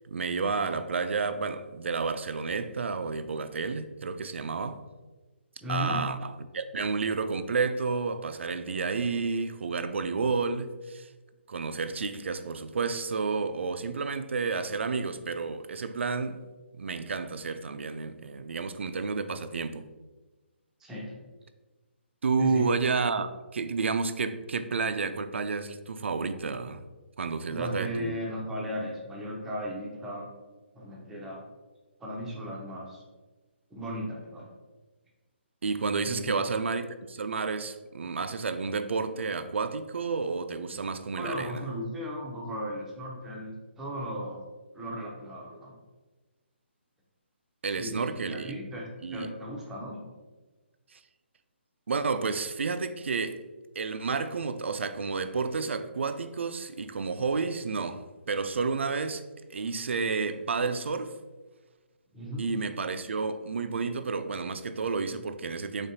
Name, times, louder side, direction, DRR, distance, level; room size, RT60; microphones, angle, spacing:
voice 1, 0.0-4.8 5.7-11.1 11.5-16.4 16.8-19.9 22.2-26.8 27.2-28.1 35.6-41.6 47.6-48.6 49.0-49.3 50.9-51.0 51.9-53.4 53.8-61.2 62.4-65.9, right 4 dB, 75° right, 0.4 m, -31 dB
voice 2, 5.6-6.0 20.8-21.2 22.4-22.7 27.5-30.3 30.7-31.4 32.0-33.0 33.7-34.5 36.0-36.5 41.2-44.4 44.7-45.8 47.8-50.0 62.1-62.5, equal, 5° right, 0.6 m, -36 dB
5.0 x 3.5 x 2.7 m
hypercardioid pair, 160°, 6 cm